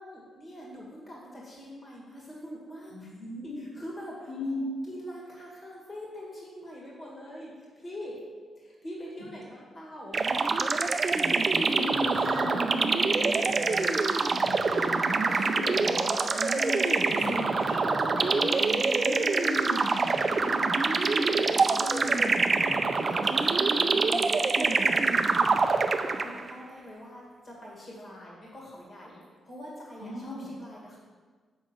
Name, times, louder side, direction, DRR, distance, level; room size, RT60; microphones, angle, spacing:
voice 1, 0.0-3.0 3.8-4.1 4.9-7.5 7.8-8.2 8.6-10.2 15.3-15.5 23.1-24.0 24.6-25.8 26.2-29.2 29.4-31.0, equal, 30° left, -4 dB, 2.1 m, -43 dB
voice 2, 2.9-3.7 4.3-4.6 9.2-9.3 11.1-16.0 16.3-24.3 24.7-24.8 30.0-30.5, left 1 dB, 85° left, -5 dB, 2.8 m, -37 dB
sound 1, 10.1-26.5, right 4 dB, 30° right, 0.5 m, -25 dB
8.0 x 6.2 x 6.1 m, 1.5 s
wide cardioid pair, 165°, 0 cm